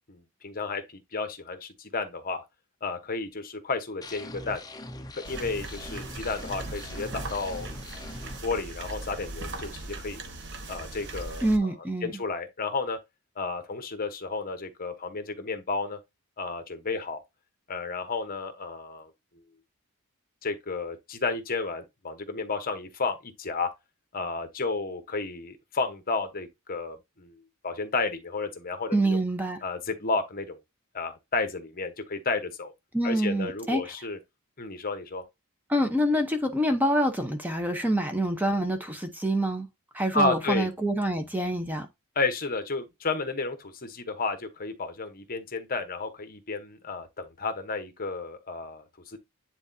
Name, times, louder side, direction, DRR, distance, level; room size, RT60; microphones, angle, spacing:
voice 1, 0.1-2.4 2.8-4.6 5.1-7.7 8.4-10.2 10.7-11.7 12.0-13.0 13.4-16.0 16.4-17.2 17.7-19.1 20.4-23.7 24.1-29.2 29.6-30.6 30.9-32.7 33.0-34.2 34.6-35.2 40.1-40.7 42.2-49.2, left 3 dB, 40° left, 1.1 m, -32 dB
sound 1, 4.0-8.4, left 1 dB, 15° left, 0.6 m, -42 dB
sound 2, 5.2-11.6, right 2 dB, 55° right, 1.2 m, -39 dB
voice 2, 11.4-12.1 28.9-29.6 32.9-33.9 35.7-39.7 39.9-41.9, right 1 dB, 10° right, 0.9 m, -26 dB
9.8 x 3.9 x 2.7 m
head